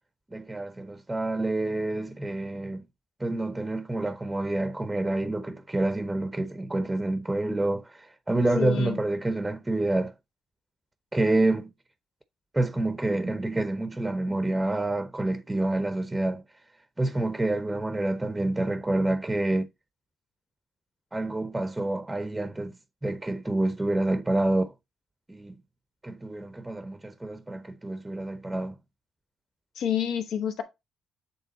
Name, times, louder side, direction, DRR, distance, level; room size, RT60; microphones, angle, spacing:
voice 1, 0.3-2.8 3.2-10.1 11.1-11.7 12.5-16.4 17.0-19.7 21.1-22.8 23.0-24.7 25.3-25.5 26.0-28.8, right 2 dB, 15° right, 0.7 m, -28 dB
voice 2, 8.6-9.0 29.7-30.6, left 8 dB, 80° left, 1.3 m, -28 dB
8.3 x 3.5 x 4.1 m
cardioid pair, 90°, 0 cm